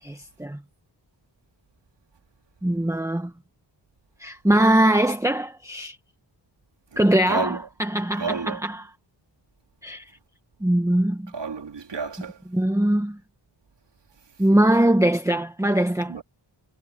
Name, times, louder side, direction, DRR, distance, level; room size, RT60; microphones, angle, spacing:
voice 1, 0.0-0.6 2.6-3.3 4.2-6.0 7.0-8.9 9.8-10.1 10.6-11.3 12.5-13.2 14.4-16.2, right 1 dB, 5° right, 1.4 m, -22 dB
voice 2, 7.3-7.6 8.2-8.6 11.3-12.4 16.1-16.2, right 5 dB, 65° right, 2.9 m, -30 dB
wide cardioid pair, 115°, 45 cm